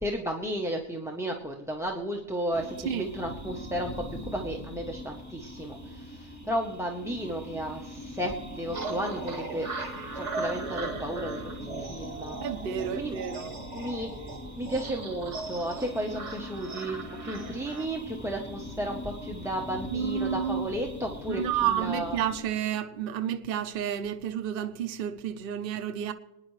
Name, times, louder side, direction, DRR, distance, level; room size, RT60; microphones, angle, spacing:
voice 1, 0.0-9.7 10.1-12.4 13.0-13.2 13.5-14.1 14.5-21.4 21.7-22.2, right 1 dB, 5° right, 0.8 m, -33 dB
sound 1, 2.5-22.4, left 1 dB, 15° left, 1.9 m, -42 dB
sound 2, 8.7-17.9, right 3 dB, 80° right, 2.0 m, -38 dB
voice 2, 12.4-13.5 19.9-20.7 21.3-26.1, right 9 dB, 55° right, 0.8 m, -30 dB
26.5 x 10.0 x 3.2 m
omnidirectional pair, 1.2 m